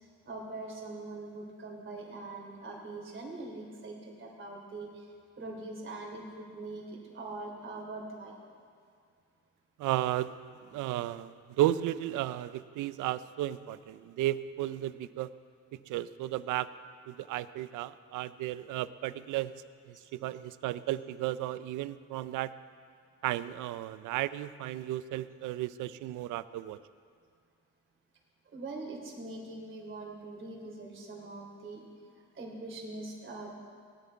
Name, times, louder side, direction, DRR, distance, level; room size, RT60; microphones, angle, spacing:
voice 1, 0.2-5.0 5.4-8.3 28.5-31.8 32.3-33.5, right 2 dB, 40° right, -1 dB, 3.3 m, -42 dB
voice 2, 9.8-10.3 10.7-15.3 15.9-16.7 17.1-19.5 19.8-22.5 23.2-26.8, right 14 dB, 85° right, 16 dB, 0.5 m, -34 dB
18.0 x 9.4 x 4.6 m, 2.2 s
cardioid pair, 90°, 30 cm